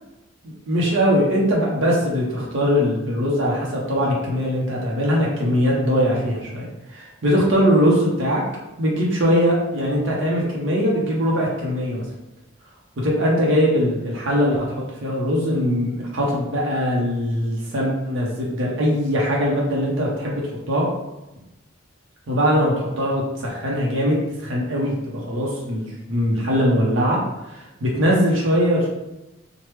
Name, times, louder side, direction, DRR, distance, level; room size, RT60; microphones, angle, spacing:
voice 1, 0.4-8.4 8.8-12.0 13.0-14.7 15.0-20.9 22.3-27.2 27.5-28.9, equal, 60° right, -3 dB, 0.6 m, -21 dB
3.1 x 2.1 x 3.2 m, 0.98 s
head